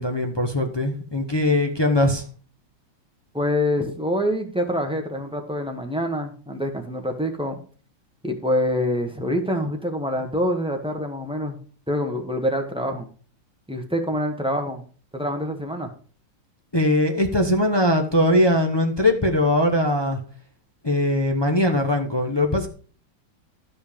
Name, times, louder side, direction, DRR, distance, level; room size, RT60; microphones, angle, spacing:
voice 1, 0.0-2.2 16.7-20.2 20.8-22.7, left 1 dB, 40° left, 2 dB, 0.3 m, -21 dB
voice 2, 3.3-7.6 8.2-11.6 11.9-13.1 13.7-14.8 15.1-15.9, equal, 5° right, 2 dB, 0.7 m, -25 dB
12.5 x 5.4 x 5.1 m, 0.41 s
omnidirectional pair, 2.3 m